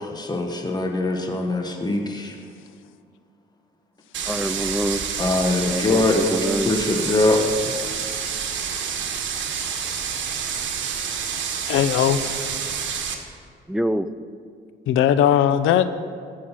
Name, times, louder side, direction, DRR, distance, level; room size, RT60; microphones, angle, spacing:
voice 1, 0.0-2.4 5.2-6.2 6.6-7.4, left 2 dB, 20° left, 3 dB, 1.3 m, -22 dB
sound 1, 4.1-13.2, right 7 dB, 70° right, 1.4 m, -28 dB
voice 2, 4.3-5.0 5.6-6.7 12.1-12.2 13.7-14.1, right 1 dB, 5° right, 12 dB, 0.4 m, -26 dB
voice 3, 11.7-12.2 14.9-15.8, left 10 dB, 85° left, 13 dB, 0.6 m, -18 dB
15.0 x 6.5 x 5.8 m, 2.1 s
cardioid pair, 90°, 20 cm